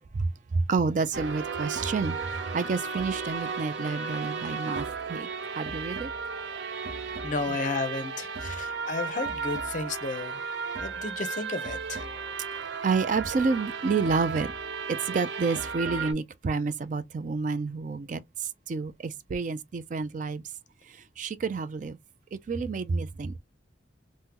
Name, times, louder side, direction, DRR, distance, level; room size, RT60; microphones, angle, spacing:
voice 1, 0.1-6.1 7.5-7.6 12.8-14.5 14.9-20.4 20.8-22.0 22.3-23.4, right 4 dB, 45° right, 0.3 m, -29 dB
sound 1, 1.1-16.1, right 5 dB, 80° right, 0.6 m, -34 dB
voice 2, 7.2-10.4 10.8-12.0, left 3 dB, 40° left, 0.5 m, -33 dB
3.6 x 2.1 x 2.8 m
head